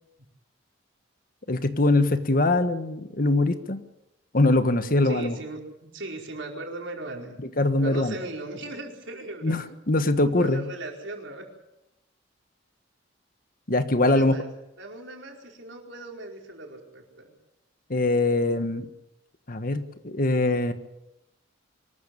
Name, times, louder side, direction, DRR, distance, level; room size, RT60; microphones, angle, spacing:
voice 1, 1.5-3.8 4.3-5.4 7.6-8.1 9.4-10.6 13.7-14.3 17.9-18.9 19.5-20.7, left 2 dB, 45° left, 9 dB, 1.4 m, -22 dB
voice 2, 5.0-7.3 7.8-9.5 10.3-11.5 14.0-14.5 14.8-17.3, right 2 dB, 70° right, 1 dB, 4.8 m, -38 dB
24.5 x 14.5 x 8.6 m, 0.89 s
head